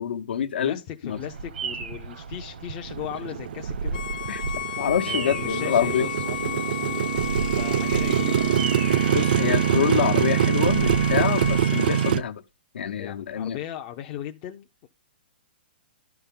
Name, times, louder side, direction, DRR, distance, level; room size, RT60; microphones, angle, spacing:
voice 1, 0.0-1.2 4.3-4.4 4.8-6.1 9.1-12.4 12.7-13.6, left 8 dB, 75° left, 1.0 m, -26 dB
voice 2, 0.6-4.0 5.0-7.1 7.6-8.7 13.0-14.9, left 11 dB, 25° left, 0.5 m, -37 dB
Bird vocalization bird call bird song, 1.1-11.6, right 4 dB, 75° right, 0.9 m, -35 dB
Motorcycle, 2.9-12.2, right 9 dB, 60° right, 0.4 m, -24 dB
Bowed string instrument, 3.9-12.2, left 12 dB, 55° left, 0.9 m, -34 dB
11.5 x 5.7 x 3.7 m
hypercardioid pair, 170°, 6 cm